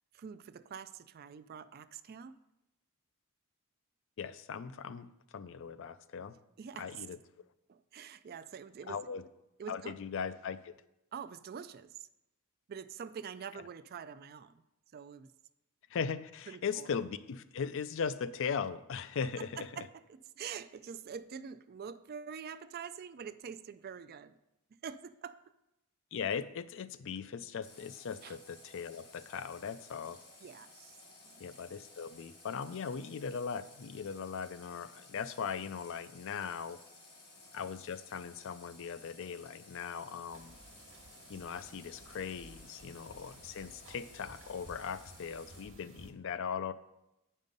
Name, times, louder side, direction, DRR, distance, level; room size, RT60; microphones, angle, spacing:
voice 1, 0.1-2.4 6.6-7.1 7.7-9.0 9.6-10.0 11.1-12.1 12.7-14.6 14.9-15.3 16.5-16.9 19.2-24.4 24.8-25.5 28.2-28.4 30.4-31.0 31.2-31.6, right 7 dB, 45° right, 13 dB, 0.3 m, -46 dB
voice 2, 4.2-6.3 6.8-7.2 8.9-9.2 9.7-10.7 15.9-19.9 26.1-30.2 31.4-36.8 37.5-40.6 41.3-46.7, left 6 dB, 60° left, 14 dB, 0.4 m, -39 dB
Water tap faucet, 27.6-45.6, left 2 dB, 85° left, 3.5 m, -57 dB
sound 1, 40.3-46.1, right 2 dB, 60° right, 1.4 m, -56 dB
9.1 x 5.4 x 5.2 m, 0.91 s
head